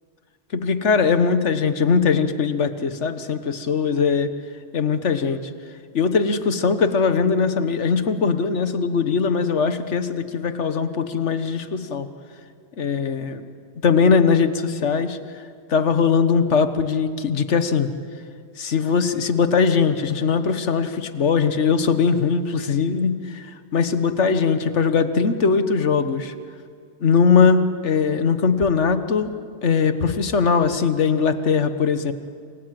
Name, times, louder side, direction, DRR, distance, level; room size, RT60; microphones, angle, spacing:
voice 1, 0.5-4.3 4.7-5.4 5.9-12.1 12.8-13.4 13.8-15.2 15.7-17.9 18.6-26.3 27.0-29.3 29.6-32.1, left 5 dB, 90° left, 10 dB, 1.6 m, -20 dB
28.0 x 25.5 x 7.7 m, 2.2 s
omnidirectional pair, 1.2 m